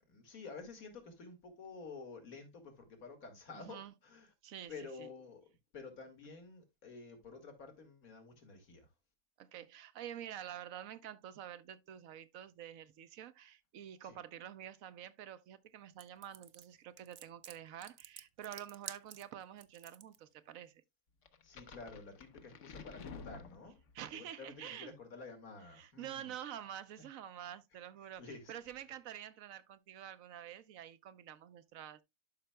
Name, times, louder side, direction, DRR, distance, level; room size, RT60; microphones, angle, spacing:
voice 1, 0.1-4.3 4.7-5.5 5.7-8.9 14.0-14.2 21.4-23.8 24.1-26.3 28.2-28.5, left 4 dB, 80° left, 2.3 m, -51 dB
voice 2, 3.5-3.9 4.4-5.1 9.4-20.8 23.9-24.9 25.7-32.0, right 10 dB, 75° right, 1.1 m, -48 dB
sound 1, 16.0-20.2, right 9 dB, 55° right, 0.7 m, -50 dB
sound 2, 21.3-24.1, left 5 dB, 60° left, 1.2 m, -51 dB
12.0 x 5.7 x 2.2 m
omnidirectional pair, 1.5 m